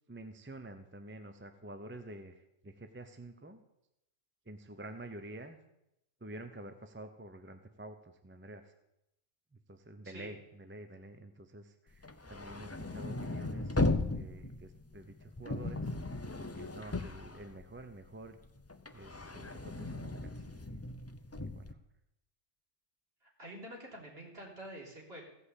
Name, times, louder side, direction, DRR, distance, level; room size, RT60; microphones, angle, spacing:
voice 1, 0.1-3.6 4.5-5.6 6.2-8.7 9.7-13.8 14.0-15.8 16.5-18.4 18.9-20.7 21.3-21.8, right 1 dB, 10° right, 8 dB, 0.6 m, -49 dB
sound 1, 12.0-18.1 18.4-21.7, left 2 dB, 25° left, 0.3 m, -37 dB
voice 2, 23.2-25.2, right 1 dB, 50° right, -3 dB, 3.7 m, -47 dB
16.0 x 5.6 x 8.2 m, 0.86 s
omnidirectional pair, 1.3 m